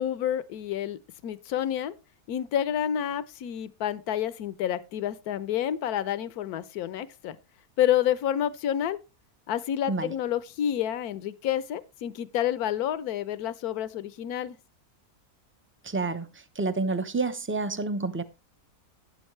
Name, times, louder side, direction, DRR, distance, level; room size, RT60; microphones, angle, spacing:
voice 1, 0.0-1.9 2.3-7.4 7.8-9.0 9.5-14.6, left 10 dB, 75° left, 1.3 m, -29 dB
voice 2, 15.8-18.2, right 3 dB, 15° right, 0.5 m, -29 dB
12.0 x 9.3 x 3.2 m
omnidirectional pair, 1.6 m